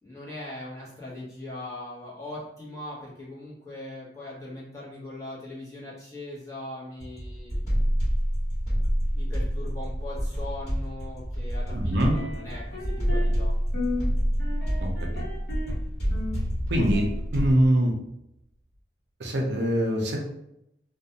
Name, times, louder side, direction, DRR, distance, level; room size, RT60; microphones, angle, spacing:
voice 1, 0.0-7.7 9.1-13.5, left 1 dB, 15° left, -7 dB, 0.9 m, -40 dB
sound 1, 7.0-17.7, equal, 40° left, 1.3 m, -28 dB
voice 2, 11.7-12.2 14.8-15.2 16.7-17.1 17.3-17.9 19.2-20.2, right 1 dB, 70° right, 1 dB, 0.5 m, -23 dB
sound 2, 11.9-13.4 13.7-14.1 14.4-15.8 16.1-17.1, left 2 dB, 65° left, 0.9 m, -35 dB
2.4 x 2.2 x 2.7 m, 0.82 s
head